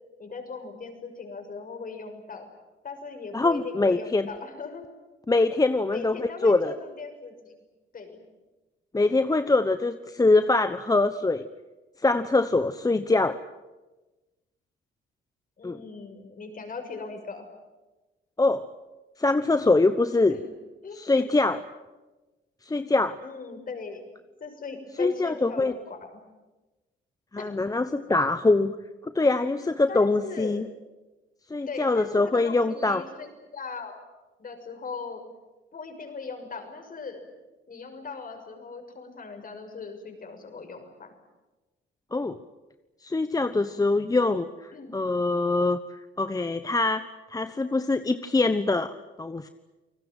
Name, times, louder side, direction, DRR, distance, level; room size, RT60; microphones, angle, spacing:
voice 1, 0.2-2.5 2.8-4.8 5.9-7.5 7.9-8.2 15.6-17.4 20.3-20.4 20.8-21.0 23.2-24.0 24.4-26.1 27.4-27.5 29.9-30.6 31.7-34.0 34.4-35.2 35.7-37.2 37.7-41.1 44.7-44.9, left 4 dB, 45° left, 6 dB, 6.3 m, -39 dB
voice 2, 3.3-4.3 5.3-6.8 8.9-11.5 12.0-13.4 15.6-15.8 18.4-18.6 19.2-20.4 20.9-21.6 22.6-23.2 25.0-25.7 27.3-28.8 29.0-30.6 31.5-33.0 42.1-42.4 43.0-49.5, left 2 dB, 20° left, 10 dB, 1.1 m, -24 dB
29.0 x 19.5 x 9.0 m, 1.1 s
cardioid pair, 90°, 20 cm